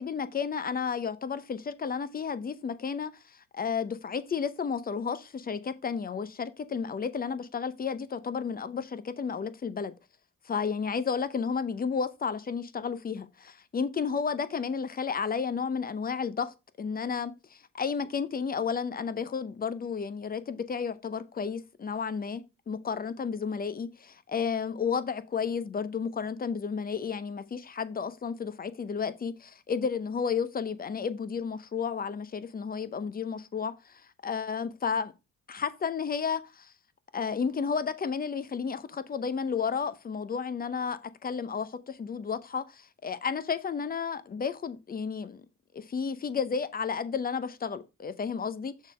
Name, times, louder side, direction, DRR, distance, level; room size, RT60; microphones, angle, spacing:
voice 1, 0.0-9.9 10.4-35.1 35.5-36.7 37.1-45.4 45.7-48.9, left 6 dB, 30° left, 0.7 m, -32 dB
6.4 x 3.7 x 4.7 m
cardioid pair, 90°, 30 cm